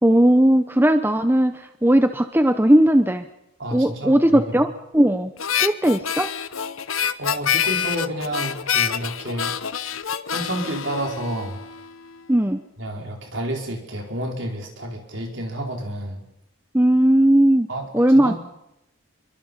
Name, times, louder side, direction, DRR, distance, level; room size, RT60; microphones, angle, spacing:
voice 1, 0.0-3.2 3.7-5.3 5.6-6.3 12.3-12.6 16.7-17.7 17.9-18.3, right 1 dB, 10° right, 8 dB, 0.8 m, -17 dB
voice 2, 3.6-4.5 7.2-9.5 10.3-11.6 12.8-16.2 17.7-18.4, right 1 dB, 60° right, 1 dB, 5.1 m, -30 dB
Harmonica, 5.4-11.9, left 8 dB, 80° left, 1.0 m, -26 dB
27.5 x 24.0 x 5.6 m, 0.85 s
head